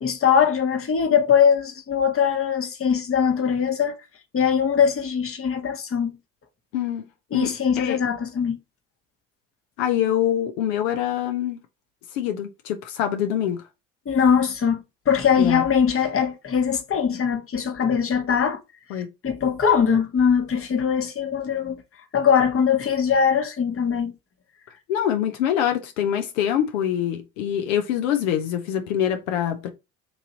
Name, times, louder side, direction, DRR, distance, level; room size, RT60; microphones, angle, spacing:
voice 1, 0.0-4.0 4.3-6.2 7.3-8.6 14.1-18.6 18.9-21.8 22.1-24.1, left 7 dB, 35° left, 1.0 m, -21 dB
voice 2, 6.7-7.5 7.8-8.0 9.8-11.6 12.1-13.6 15.4-15.6 18.9-19.1 24.9-29.7, left 10 dB, 85° left, 0.6 m, -25 dB
3.1 x 2.6 x 3.8 m
hypercardioid pair, 65°, 38 cm